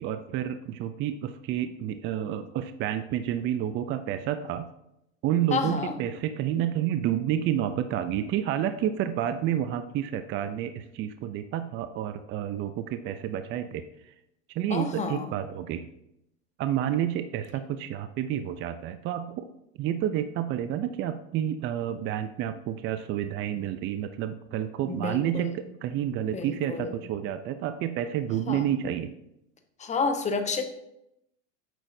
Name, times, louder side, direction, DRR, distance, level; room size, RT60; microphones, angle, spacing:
voice 1, 0.0-4.7 5.2-14.1 14.5-15.9 16.6-19.4 19.8-29.1, right 10 dB, 35° right, 10 dB, 0.4 m, -30 dB
voice 2, 5.5-5.9 14.7-15.3 24.8-25.6 26.3-27.0 28.5-28.6 29.8-30.6, left 4 dB, 20° left, 6 dB, 1.0 m, -30 dB
8.9 x 6.1 x 2.7 m, 0.80 s
supercardioid pair, 115°, 35 cm